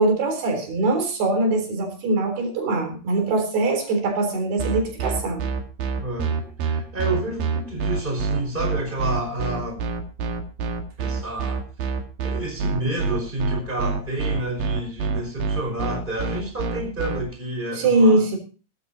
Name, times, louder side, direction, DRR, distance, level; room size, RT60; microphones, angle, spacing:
voice 1, 0.0-5.5 17.8-18.4, right 2 dB, 90° right, 5 dB, 5.8 m, -22 dB
sound 1, 4.6-17.2, right 5 dB, 70° right, 3.6 m, -26 dB
voice 2, 6.0-6.3 6.6-9.9 11.0-11.6 12.2-18.2, right 1 dB, 10° right, 3 dB, 5.4 m, -29 dB
20.5 x 13.5 x 2.9 m, 0.36 s
omnidirectional pair, 4.4 m